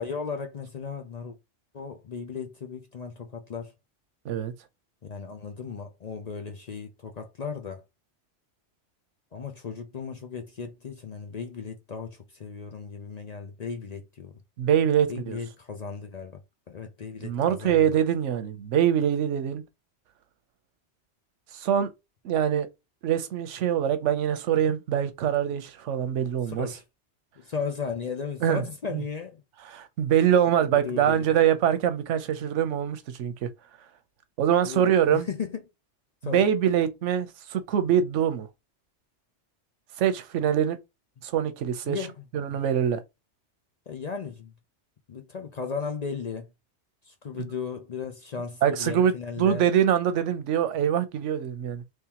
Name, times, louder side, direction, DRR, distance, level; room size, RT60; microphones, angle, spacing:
voice 1, 0.0-1.4 1.7-3.7 5.0-7.8 9.3-14.3 15.1-16.4 16.7-17.9 26.5-26.8 27.4-29.4 30.6-31.4 34.6-34.9 35.1-35.6 36.2-36.4 41.8-42.1 43.9-44.5 45.1-46.5 47.1-49.7, left 6 dB, 50° left, 0.5 m, -35 dB
voice 2, 14.6-15.4 17.2-19.6 21.5-21.9 22.2-22.7 23.0-26.7 28.4-28.6 28.9-29.0 29.6-33.5 34.4-35.3 36.2-38.5 40.0-40.8 41.2-42.0 42.3-43.0 47.4-47.5 48.6-51.8, right 9 dB, 90° right, 1.0 m, -24 dB
3.6 x 3.1 x 2.8 m
omnidirectional pair, 1.2 m